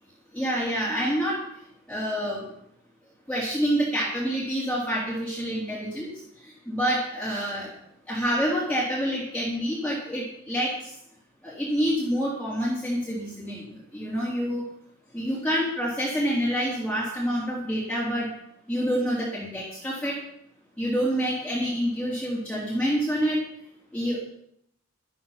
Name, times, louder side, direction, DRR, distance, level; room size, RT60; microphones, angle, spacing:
voice 1, 0.3-1.4 1.9-2.4 3.3-6.1 6.7-7.7 8.1-10.9 11.4-14.6 15.1-18.3 18.7-20.2 20.8-23.4 23.9-24.2, equal, 5° left, -7 dB, 3.5 m, -27 dB
12.5 x 12.5 x 5.8 m, 0.73 s
head